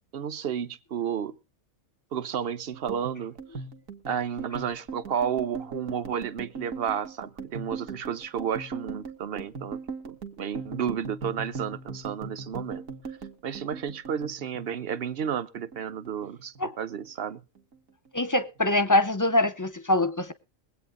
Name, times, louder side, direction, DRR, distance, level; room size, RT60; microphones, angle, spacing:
voice 1, 0.1-1.4 2.1-3.4 4.1-9.8 10.1-12.8 13.4-17.4, right 8 dB, 50° right, 0.9 m, -32 dB
sound 1, 2.7-15.3 15.6-16.6 16.9-17.3 17.6-18.2, right 4 dB, 70° right, 1.9 m, -39 dB
voice 2, 18.1-20.3, left 2 dB, 20° left, 0.6 m, -24 dB
22.0 x 8.5 x 3.8 m
omnidirectional pair, 1.4 m